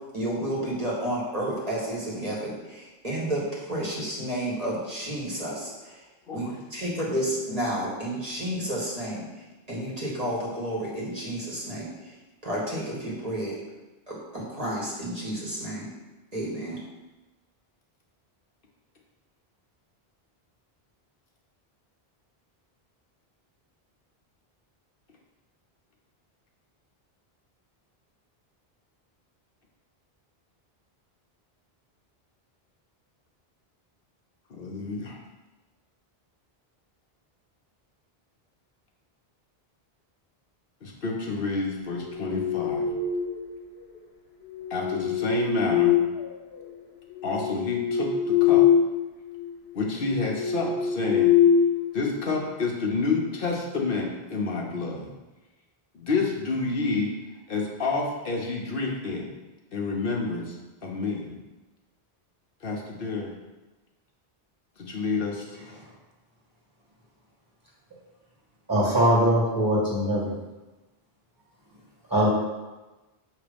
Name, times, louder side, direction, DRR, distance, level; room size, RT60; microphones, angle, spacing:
voice 1, 0.1-6.0 6.3-9.2 9.7-11.9 12.4-13.6 14.1-15.9 16.3-16.8, right 1 dB, 40° right, -6 dB, 1.5 m, -31 dB
voice 2, 34.5-35.2 40.8-42.9 44.7-45.9 47.2-48.7 49.7-51.3 51.9-55.1 55.9-57.1 57.5-59.3 59.7-60.6 60.8-61.3 62.6-63.3 64.8-65.5, left 3 dB, 65° left, -1 dB, 1.0 m, -29 dB
sound 1, 42.0-43.5 44.5-46.6 47.1-49.0 49.3-49.5 50.0-52.4, left 8 dB, 85° left, 1.1 m, -23 dB
voice 3, 68.7-70.3 72.1-72.3, equal, 20° right, -5 dB, 1.8 m, -21 dB
6.4 x 3.0 x 5.1 m, 1.1 s
omnidirectional pair, 1.0 m